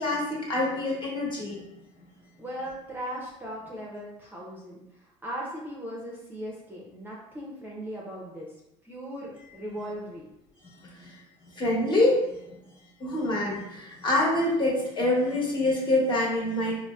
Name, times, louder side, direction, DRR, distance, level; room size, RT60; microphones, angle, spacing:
voice 1, 0.0-1.6 11.0-11.1 11.6-12.2 13.0-16.8, left 1 dB, 30° left, -4 dB, 1.2 m, -25 dB
voice 2, 2.4-4.8 5.2-8.5 8.8-10.3, equal, 15° right, -4 dB, 0.6 m, -38 dB
3.9 x 2.1 x 2.3 m, 0.87 s
supercardioid pair, 85°, 15 cm